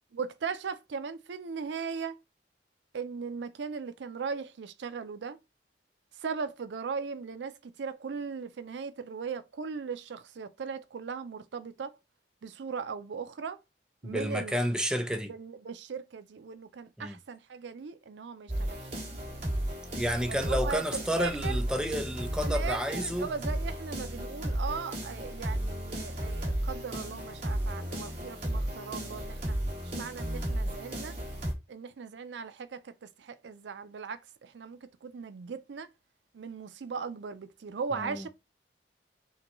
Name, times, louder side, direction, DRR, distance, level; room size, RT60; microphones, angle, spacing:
voice 1, 0.1-2.2 2.9-5.4 6.2-12.0 12.4-13.6 14.0-14.6 15.3-19.1 20.3-21.6 22.4-29.6 29.9-31.2 31.7-35.9 36.3-38.3, right 5 dB, 80° right, 0.4 m, -38 dB
voice 2, 14.0-15.3 17.0-17.1 19.9-23.3 38.0-38.3, equal, 5° right, 0.5 m, -31 dB
sound 1, 18.5-31.5, right 1 dB, 45° right, 2.0 m, -34 dB
6.3 x 2.2 x 3.0 m
head